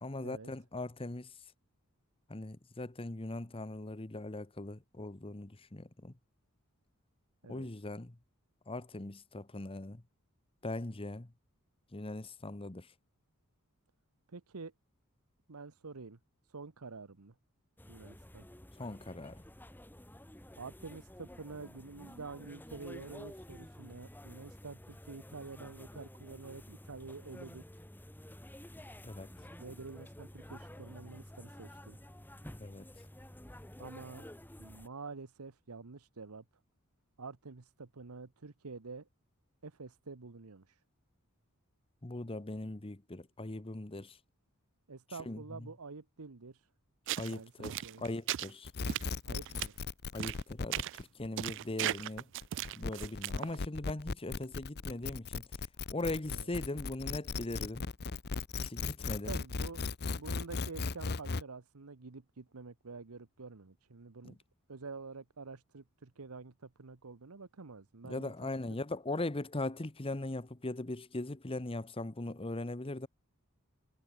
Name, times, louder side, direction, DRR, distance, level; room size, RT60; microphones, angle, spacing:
voice 1, 0.0-1.3 2.3-6.1 7.5-8.1 8.7-10.0 10.6-11.3 11.9-12.9 18.8-19.4 29.0-29.3 32.6-32.9 42.0-44.2 45.3-45.4 47.2-48.7 50.1-52.3 52.7-55.4 55.9-57.8 58.6-59.4 64.2-64.3 68.0-73.1, left 2 dB, 25° left, 1.1 m, -40 dB
voice 2, 14.3-14.7 15.5-16.2 16.5-17.4 17.9-18.5 20.6-27.7 29.6-32.0 33.8-34.3 34.6-36.4 37.2-39.1 39.6-40.8 44.9-46.7 47.3-48.0 49.3-49.7 56.3-56.5 59.1-59.8 60.1-64.4 64.7-68.8, right 4 dB, 85° right, 1.0 m, -48 dB
sound 1, 17.8-34.9, left 1 dB, 10° left, 2.2 m, -51 dB
sound 2, 47.1-47.3 47.6-48.5 48.9-49.1 49.5-49.7 50.2-50.4 50.7-51.0 51.4-53.6, right 12 dB, 55° right, 0.3 m, -36 dB
sound 3, 48.6-61.4, left 4 dB, 50° left, 0.8 m, -37 dB
head